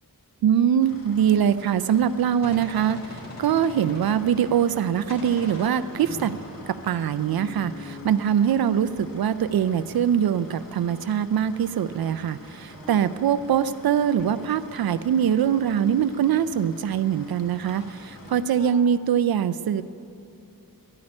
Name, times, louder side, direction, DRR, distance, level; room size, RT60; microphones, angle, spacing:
voice 1, 0.4-6.3 6.7-19.8, right 9 dB, 80° right, 13 dB, 0.5 m, -23 dB
sound 1, 0.8-18.4, left 1 dB, 65° left, 2.0 m, -46 dB
Gunshot gunfire, 2.4-4.8 5.1-7.8, left 1 dB, 45° left, 3.3 m, -42 dB
sound 2, 5.7-11.7 12.0-13.2 14.2-14.5 14.7-14.9 15.4-15.7 17.7-17.8 18.2-18.9, left 1 dB, 20° right, 2.2 m, -46 dB
12.0 x 9.6 x 9.8 m, 2.7 s
wide cardioid pair, 155°, 36 cm